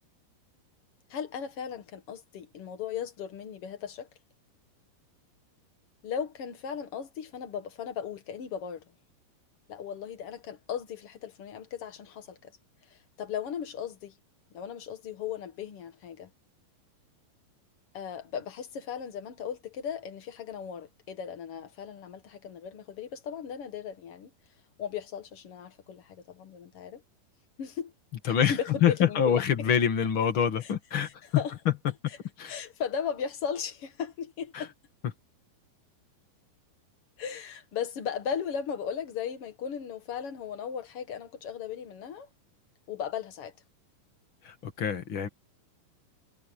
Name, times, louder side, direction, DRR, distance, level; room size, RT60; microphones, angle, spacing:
voice 1, 1.1-4.1 6.0-8.8 9.7-12.5 12.8-14.2 14.5-16.3 17.9-24.3 24.8-27.0 27.6-27.9 28.2-29.7 30.6-30.7 31.0-31.5 32.1-32.2 32.5-34.7 37.2-42.3 42.9-43.5, left 7 dB, 80° left, 1.2 m, -37 dB
voice 2, 28.2-31.1 32.4-32.6 34.5-34.7 44.4-45.3, left 8 dB, 45° left, 1.8 m, -26 dB
omnidirectional pair, 5.0 m